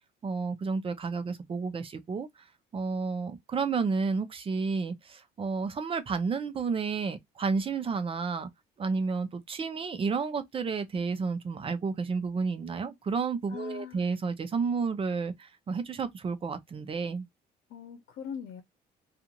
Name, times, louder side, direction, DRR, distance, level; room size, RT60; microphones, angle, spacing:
voice 1, 0.2-2.3 2.7-8.5 8.8-17.3, right 5 dB, 30° right, 0.6 m, -31 dB
voice 2, 13.5-14.1 17.7-18.6, left 8 dB, 80° left, 0.7 m, -41 dB
2.5 x 2.5 x 2.8 m
cardioid pair, 110°, 17 cm